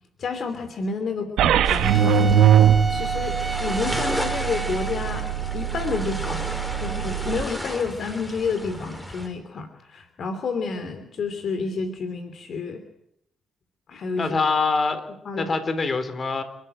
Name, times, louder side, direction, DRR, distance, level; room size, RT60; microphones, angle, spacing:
voice 1, 0.2-2.3 2.9-5.3 5.5-12.8 13.9-14.3 15.2-15.5, left 4 dB, 55° left, 8 dB, 3.0 m, -30 dB
sound 1, 1.4-7.4, right 9 dB, 85° right, 1.6 m, -22 dB
sound 2, 1.6-9.3, equal, 5° left, 5.1 m, -34 dB
Wind instrument woodwind instrument, 1.8-7.5, right 3 dB, 15° right, 2.1 m, -33 dB
voice 2, 14.2-15.1 15.3-16.4, left 4 dB, 35° left, 10 dB, 4.0 m, -24 dB
28.0 x 13.0 x 9.0 m, 0.77 s
cardioid pair, 90°, 0 cm